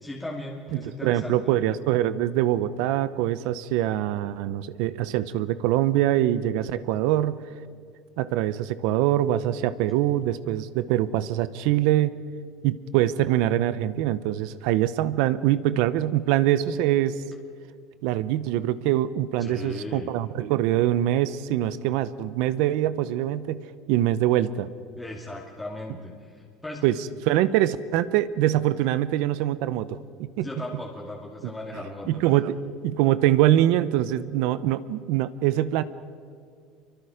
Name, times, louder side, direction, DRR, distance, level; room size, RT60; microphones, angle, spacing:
voice 1, 0.0-1.5 9.6-9.7 19.4-20.1 25.0-26.8 30.4-32.2, left 1 dB, 5° left, -3 dB, 2.6 m, -37 dB
voice 2, 0.7-7.4 8.2-12.2 12.6-17.2 18.0-23.6 23.9-24.7 26.8-27.0 27.2-30.5 31.4-31.5 32.1-32.6 32.8-35.8, right 13 dB, 70° right, 15 dB, 0.9 m, -24 dB
27.0 x 24.0 x 5.1 m, 2.1 s
supercardioid pair, 130°, 0 cm